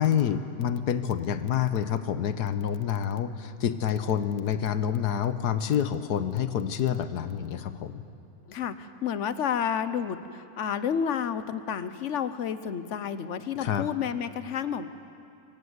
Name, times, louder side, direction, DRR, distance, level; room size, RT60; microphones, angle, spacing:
voice 1, 0.0-7.9 13.6-13.9, left 9 dB, 85° left, 11 dB, 1.5 m, -27 dB
voice 2, 8.5-14.9, left 8 dB, 55° left, 12 dB, 1.1 m, -30 dB
25.5 x 16.0 x 8.1 m, 2.5 s
omnidirectional pair, 1.7 m